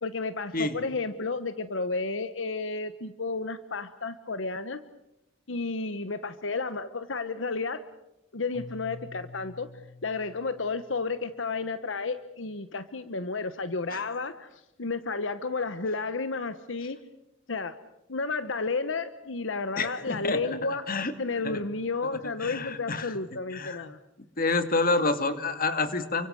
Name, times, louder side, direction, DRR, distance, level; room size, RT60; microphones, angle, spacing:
voice 1, 0.0-4.8 5.5-7.9 8.3-9.7 10.0-17.0 17.5-17.8 18.1-20.9 21.2-24.0, left 3 dB, 80° left, 12 dB, 1.0 m, -32 dB
Keyboard (musical), 8.5-11.5, left 3 dB, 25° left, 4.9 m, -48 dB
voice 2, 19.8-20.6 20.9-21.1 21.4-21.6 22.4-23.1 23.5-23.8 24.4-26.3, left 3 dB, 50° left, 10 dB, 2.1 m, -28 dB
29.5 x 25.0 x 6.4 m, 0.88 s
head